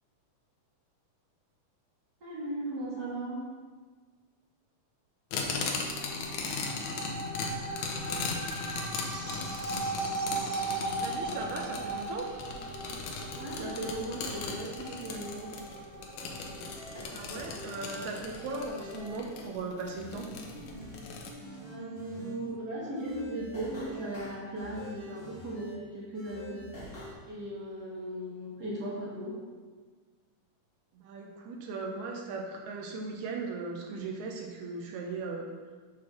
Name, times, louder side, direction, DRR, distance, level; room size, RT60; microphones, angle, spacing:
voice 1, 2.2-3.4 13.3-15.5 21.6-26.6 27.3-29.4, right 1 dB, 35° right, -8 dB, 2.2 m, -37 dB
sound 1, 5.3-21.3, left 4 dB, 75° left, 2.0 m, -38 dB
sound 2, 5.8-17.0, right 3 dB, 60° right, 2.4 m, -38 dB
voice 2, 11.0-12.3 17.1-20.3 30.9-35.5, right 3 dB, 75° right, 1 dB, 2.0 m, -38 dB
sound 3, 16.7-18.0 18.4-19.1 19.9-20.9 21.2-22.6 22.9-25.7 26.1-27.1, equal, 45° left, 0.7 m, -45 dB
6.3 x 3.9 x 6.0 m, 1.4 s
omnidirectional pair, 3.6 m